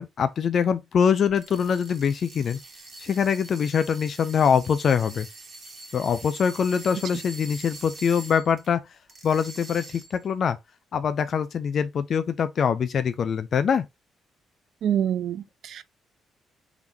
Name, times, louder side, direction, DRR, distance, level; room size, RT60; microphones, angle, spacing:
voice 1, 0.0-2.6 3.0-5.3 5.9-8.8 9.2-10.6 10.9-13.9, left 7 dB, 55° left, 0.4 m, -24 dB
sound 1, 1.3-8.7 9.1-10.3, right 2 dB, 50° right, 1.5 m, -44 dB
voice 2, 14.8-15.8, right 9 dB, 70° right, 0.3 m, -26 dB
3.6 x 3.6 x 2.8 m
cardioid pair, 90°, 0 cm